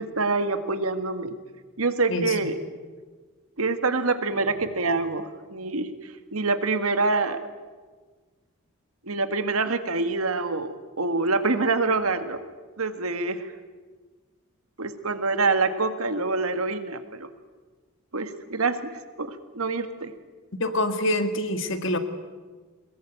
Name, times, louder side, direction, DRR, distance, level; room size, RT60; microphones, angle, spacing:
voice 1, 0.0-1.3 1.8-2.6 3.6-5.9 6.3-7.4 9.0-12.4 12.8-13.5 14.8-17.3 18.1-20.1, right 3 dB, 85° right, 10 dB, 1.8 m, -26 dB
voice 2, 2.1-2.5 20.6-22.0, left 1 dB, 60° left, 9 dB, 2.0 m, -26 dB
22.5 x 21.0 x 9.1 m, 1.4 s
head